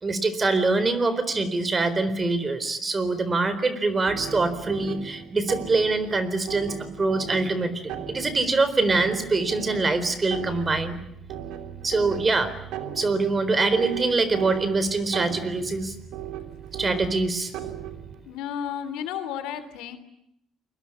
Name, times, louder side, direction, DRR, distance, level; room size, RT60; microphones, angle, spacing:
voice 1, 0.0-11.0 11.8-12.5 13.0-16.0 16.7-17.5, right 3 dB, 30° right, 13 dB, 4.0 m, -24 dB
sound 1, 4.1-18.2, right 9 dB, 85° right, 3.0 m, -37 dB
voice 2, 18.2-20.0, left 9 dB, 90° left, 12 dB, 3.0 m, -32 dB
29.0 x 22.0 x 8.6 m, 0.77 s
cardioid pair, 95°, 0 cm